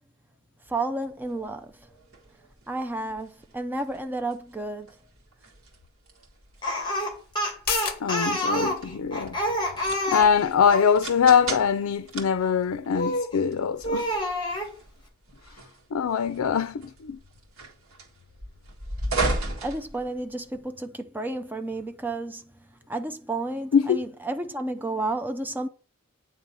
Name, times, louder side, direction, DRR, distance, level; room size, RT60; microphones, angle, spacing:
voice 1, 0.7-1.7 2.7-4.9 19.6-22.5 22.9-25.7, right 2 dB, 10° right, 0.6 m, -31 dB
sound 1, 1.2-20.6, right 2 dB, 75° right, 1.7 m, -37 dB
Speech, 6.6-10.9 12.9-13.4 13.8-14.7, equal, 20° left, 2.0 m, -28 dB
sound 2, 7.5-14.6 14.9-15.0, left 8 dB, 50° left, 0.9 m, -40 dB
voice 2, 8.0-9.4 10.1-14.2 15.9-17.2 23.7-24.0, left 7 dB, 85° left, 0.4 m, -23 dB
8.6 x 3.3 x 5.4 m
head